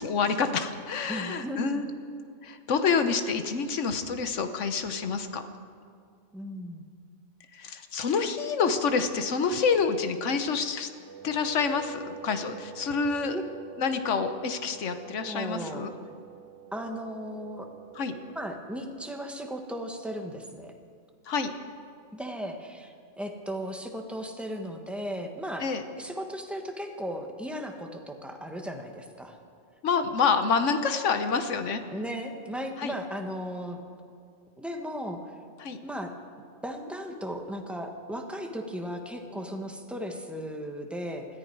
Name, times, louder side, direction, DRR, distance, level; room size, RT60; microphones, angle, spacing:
voice 1, 0.0-5.4 7.5-10.9 11.2-13.4 13.8-15.9 18.0-18.2 21.3-21.5 25.6-25.8 29.8-31.8 32.8-32.9 35.6-35.8, left 5 dB, 75° left, 9 dB, 1.3 m, -27 dB
voice 2, 1.1-1.8 6.3-6.8 13.3-13.4 15.2-15.9 16.7-17.7 18.3-20.7 22.1-25.7 26.0-29.4 31.9-33.8 34.6-35.2 35.8-36.1 36.6-41.3, equal, ahead, 3 dB, 1.3 m, -36 dB
Wind instrument woodwind instrument, 11.1-18.7, right 10 dB, 65° right, 2.5 m, -47 dB
20.5 x 14.0 x 4.7 m, 2.3 s
omnidirectional pair, 1.3 m